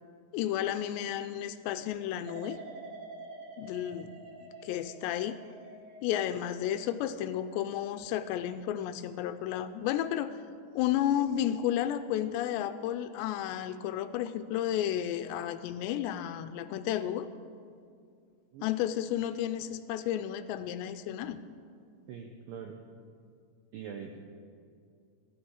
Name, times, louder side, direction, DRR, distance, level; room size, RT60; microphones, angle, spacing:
voice 1, 0.3-2.6 3.6-4.1 4.6-5.4 6.0-10.4 10.8-17.3 18.6-21.4, left 11 dB, 85° left, 11 dB, 2.7 m, -32 dB
sound 1, 2.3-9.2 9.6-10.0, right 3 dB, 55° right, 2.5 m, -49 dB
voice 2, 22.1-22.8 23.7-24.3, right 7 dB, 85° right, 3 dB, 2.0 m, -43 dB
15.0 x 12.0 x 6.3 m, 2.3 s
omnidirectional pair, 5.1 m